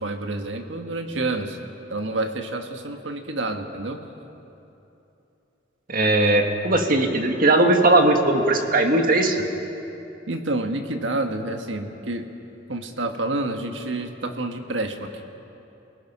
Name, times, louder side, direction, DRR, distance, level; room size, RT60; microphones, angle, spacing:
voice 1, 0.0-1.6 1.9-4.0 10.3-12.3 12.7-15.2, right 2 dB, 70° right, 5 dB, 1.6 m, -28 dB
voice 2, 5.9-9.4, right 2 dB, 45° right, 4 dB, 1.8 m, -19 dB
28.5 x 19.0 x 5.6 m, 2.9 s
head